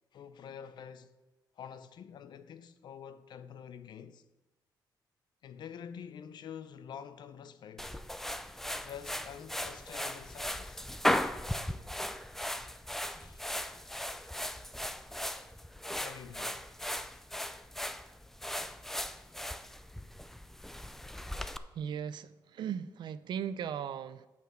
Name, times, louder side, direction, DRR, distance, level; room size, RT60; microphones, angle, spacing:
voice 1, 0.1-1.1 1.6-4.2 5.4-8.0 8.8-10.8 13.2-13.9 14.4-14.5 16.0-16.6, left 8 dB, 70° left, 0.6 m, -47 dB
sound 1, 7.8-21.6, left 1 dB, 5° left, 0.4 m, -37 dB
voice 2, 21.7-24.3, right 8 dB, 75° right, 0.5 m, -37 dB
8.2 x 6.8 x 6.2 m
cardioid pair, 125°, 8 cm